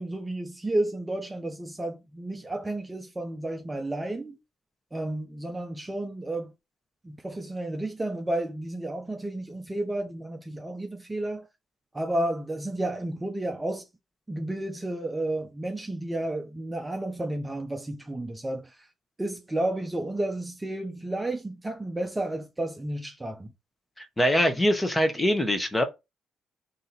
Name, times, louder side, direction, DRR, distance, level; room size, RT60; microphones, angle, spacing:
voice 1, 0.0-4.4 4.9-6.5 7.0-11.5 11.9-13.9 14.3-18.9 19.2-23.5, right 1 dB, 15° right, 0.6 m, -32 dB
voice 2, 24.2-25.8, equal, 15° left, 1.0 m, -23 dB
3.7 x 2.8 x 4.1 m
cardioid pair, 90°, 0 cm